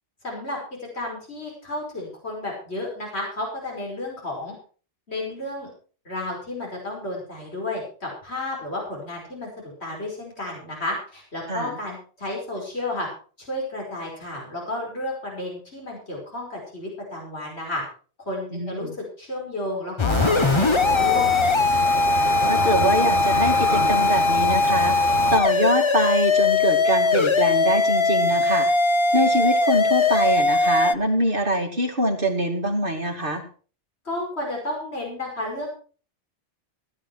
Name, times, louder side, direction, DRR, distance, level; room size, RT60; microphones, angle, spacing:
voice 1, 0.2-0.6 0.9-4.5 5.1-5.7 6.1-9.5 9.8-13.1 13.4-17.8 18.3-21.3 34.0-35.7, left 1 dB, 65° left, -1 dB, 5.7 m, -32 dB
voice 2, 18.5-18.9 22.5-25.0 25.3-28.7 29.1-33.5, right 1 dB, 50° right, 2 dB, 2.6 m, -24 dB
sound 1, 20.0-30.9, left 3 dB, 30° left, 0.6 m, -20 dB
sound 2, 20.1-25.4, right 3 dB, 65° right, 2.7 m, -27 dB
16.5 x 10.0 x 4.7 m, 0.40 s
omnidirectional pair, 1.2 m